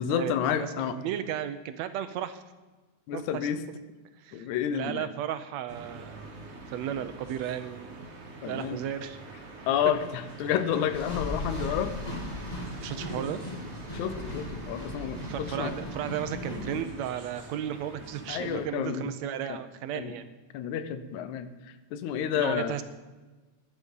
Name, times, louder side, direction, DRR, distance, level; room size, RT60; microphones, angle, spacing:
voice 1, 0.0-1.0 3.1-3.6 4.3-5.1 8.4-8.8 9.7-11.9 13.9-15.7 18.3-19.1 19.9-20.1 20.5-21.5 21.9-22.7, left 9 dB, 85° left, 11 dB, 2.3 m, -30 dB
voice 2, 0.6-2.4 3.1-3.5 4.2-6.2 6.7-8.0 8.5-9.2 12.8-13.4 15.2-20.3 22.3-22.8, right 10 dB, 75° right, 11 dB, 1.7 m, -34 dB
sound 1, 5.7-18.7, right 3 dB, 50° right, 0.8 m, -45 dB
sound 2, 10.9-16.8, left 1 dB, 20° left, 1.3 m, -37 dB
11.5 x 10.5 x 5.4 m, 1.2 s
omnidirectional pair, 3.4 m